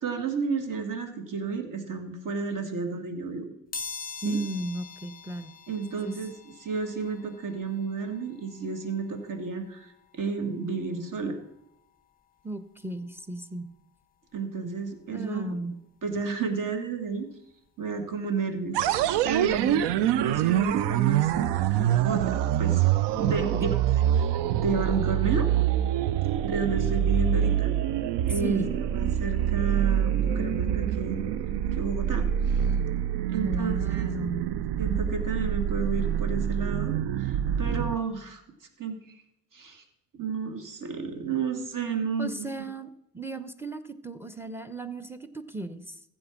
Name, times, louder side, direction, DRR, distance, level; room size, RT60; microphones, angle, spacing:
voice 1, 0.0-3.5 4.3-4.4 5.7-6.3 6.6-11.4 14.3-15.6 16.0-17.3 17.8-18.8 19.2-22.8 23.2-23.7 24.2-25.5 26.4-27.7 28.3-28.6 29.0-31.3 31.7-32.6 33.3-34.1 34.8-38.4 38.8-39.2 39.5-39.8 40.1-42.7, right 5 dB, 40° right, 7 dB, 2.0 m, -31 dB
sound 1, 3.7-14.4 14.9-15.0 16.1-16.2 16.5-18.6 18.9-21.6 21.9-22.1 22.4-22.5, left 4 dB, 20° left, 1.0 m, -46 dB
voice 2, 4.2-5.5 6.0-6.2 12.4-13.7 15.1-15.8 23.4-23.8 28.3-28.7 33.4-34.5 42.2-46.0, right 2 dB, 5° right, 12 dB, 0.9 m, -35 dB
sound 2, 18.7-38.0, right 10 dB, 60° right, 0.7 m, -26 dB
15.0 x 5.4 x 6.1 m, 0.82 s
hypercardioid pair, 50°, 46 cm